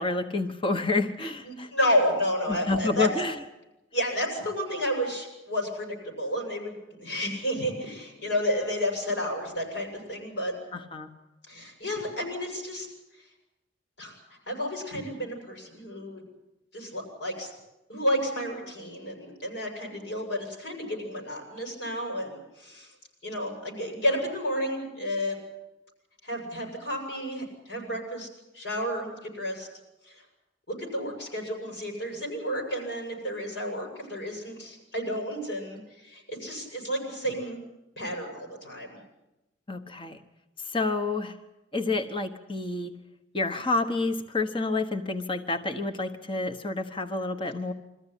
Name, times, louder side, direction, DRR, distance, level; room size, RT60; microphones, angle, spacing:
voice 1, 0.0-1.7 2.5-3.3 10.7-11.1 39.7-40.2 40.7-41.4 41.7-42.9 43.3-47.7, left 3 dB, 30° left, 7 dB, 1.2 m, -29 dB
voice 2, 1.4-3.1 3.9-6.7 7.0-10.5 11.5-12.9 14.0-14.2 14.5-16.2 16.7-17.5 17.9-22.9 23.2-25.4 26.2-28.3 28.5-29.7 30.1-30.2 30.7-37.6 38.0-39.0, equal, 80° left, 1 dB, 7.2 m, -31 dB
23.5 x 14.5 x 10.0 m, 0.98 s
head